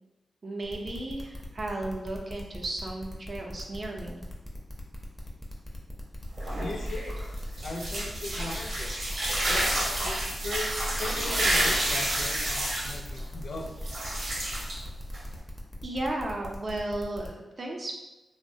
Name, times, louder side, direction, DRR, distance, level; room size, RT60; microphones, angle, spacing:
voice 1, 0.4-4.2 15.8-17.9, right 2 dB, 40° right, 0 dB, 0.4 m, -34 dB
sound 1, 0.6-17.3, left 1 dB, 15° left, 0.5 m, -42 dB
sound 2, 6.2-15.4, right 1 dB, 80° right, 0.8 m, -30 dB
voice 2, 6.6-7.2 7.6-8.9 9.5-10.7 11.0-13.8, left 2 dB, 70° left, 1 dB, 0.4 m, -38 dB
3.0 x 2.1 x 2.6 m, 1.0 s
wide cardioid pair, 140°, 0 cm